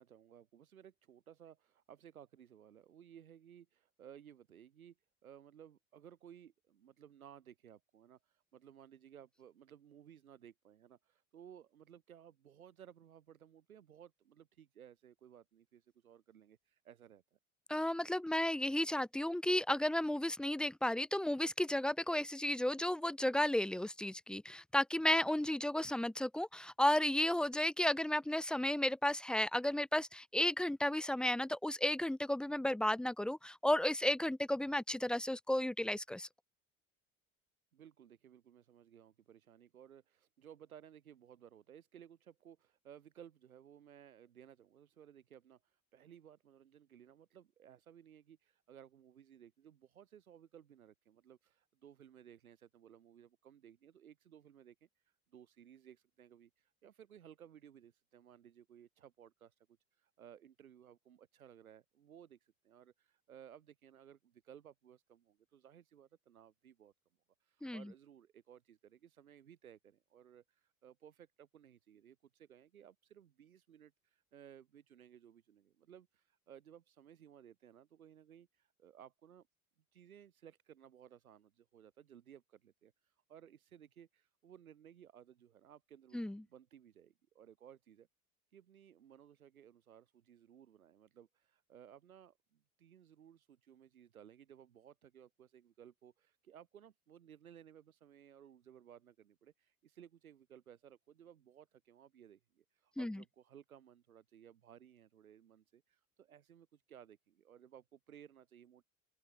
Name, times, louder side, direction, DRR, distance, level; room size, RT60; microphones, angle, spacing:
voice 1, 0.0-4.9 5.2-17.4 37.7-59.6 59.9-66.9 67.4-79.5 79.9-88.1 88.5-108.8, right 9 dB, 80° right, 5.7 m, -59 dB
voice 2, 17.7-36.3 67.6-67.9 86.1-86.4 103.0-103.2, left 1 dB, ahead, 0.4 m, -33 dB
open air
hypercardioid pair, 75°, 42 cm